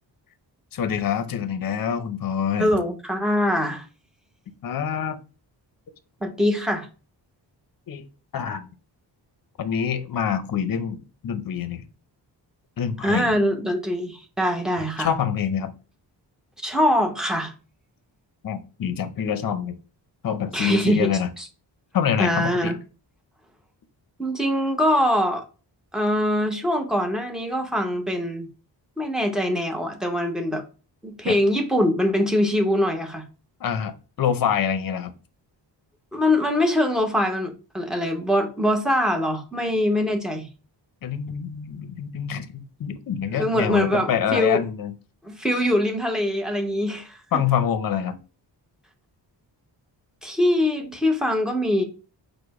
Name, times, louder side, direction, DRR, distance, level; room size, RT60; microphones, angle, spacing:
voice 1, 0.7-2.7 4.6-5.2 7.9-8.0 8.3-8.7 9.6-11.9 12.8-13.3 15.0-15.7 18.4-19.8 20.2-21.3 21.9-22.8 31.2-31.3 33.6-35.1 41.0-44.9 47.3-48.2, left 8 dB, 50° left, 11 dB, 0.6 m, -26 dB
voice 2, 2.6-3.8 6.2-6.9 13.0-15.1 16.6-17.5 20.5-21.4 22.2-22.8 24.2-25.4 25.9-28.5 29.0-30.6 31.0-33.2 36.1-40.4 43.3-44.6 45.2-47.4 50.2-51.8, left 1 dB, ahead, 3 dB, 0.7 m, -23 dB
4.9 x 2.1 x 4.6 m, 0.34 s
wide cardioid pair, 160°, 44 cm